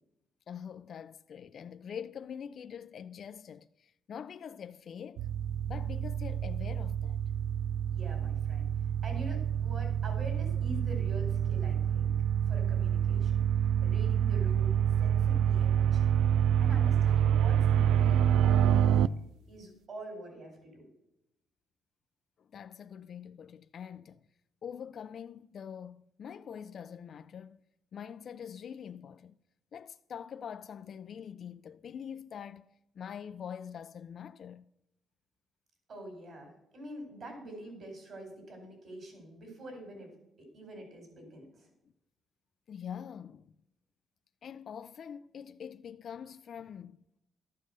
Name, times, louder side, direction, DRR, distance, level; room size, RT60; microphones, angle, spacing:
voice 1, 0.5-5.3 5.7-7.2 22.4-24.2 24.6-27.6 27.9-29.3 29.7-32.7 32.9-34.7 42.7-43.5 44.4-47.0, left 8 dB, 50° left, 0.4 m, -44 dB
sound 1, 5.2-19.1, right 9 dB, 90° right, 0.4 m, -27 dB
voice 2, 7.9-8.7 9.0-12.1 12.5-13.4 13.8-16.2 16.6-19.1 19.5-20.8 35.9-40.1 40.4-41.7, right 1 dB, 45° right, 4.8 m, -45 dB
13.5 x 7.4 x 6.6 m
cardioid pair, 135°, 0 cm